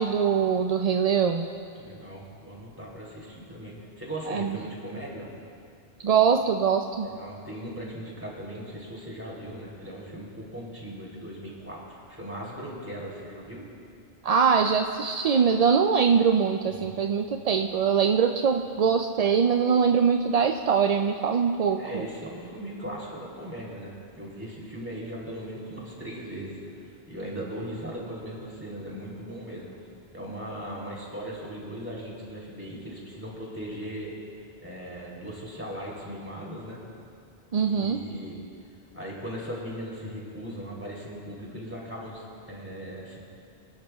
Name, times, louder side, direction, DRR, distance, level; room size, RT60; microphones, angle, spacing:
voice 1, 0.0-1.5 4.3-4.5 6.0-7.1 14.2-22.1 37.5-38.0, right 6 dB, 55° right, 4 dB, 0.4 m, -23 dB
voice 2, 1.7-5.3 7.0-13.6 16.7-17.0 21.8-29.7 30.1-34.1 34.6-36.8 37.7-38.4 38.9-43.2, equal, 10° right, -5 dB, 3.1 m, -38 dB
25.5 x 12.0 x 2.3 m, 2.4 s
omnidirectional pair, 1.1 m